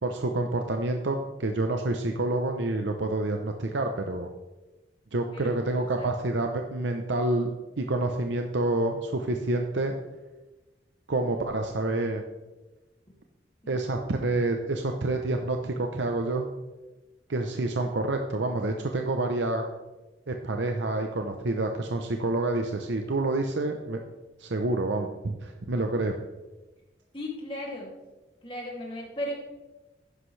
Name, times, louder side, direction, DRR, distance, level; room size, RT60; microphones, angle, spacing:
voice 1, 0.0-4.3 5.1-7.5 7.8-9.9 11.1-12.2 13.7-16.4 17.3-19.6 20.3-24.0 24.4-26.1, right 2 dB, 80° right, 4 dB, 0.8 m, -28 dB
voice 2, 5.3-6.3 13.6-13.8 17.5-17.6 27.1-27.9 28.4-29.3, left 1 dB, 30° left, -2 dB, 2.6 m, -37 dB
12.0 x 9.9 x 3.3 m, 1.1 s
head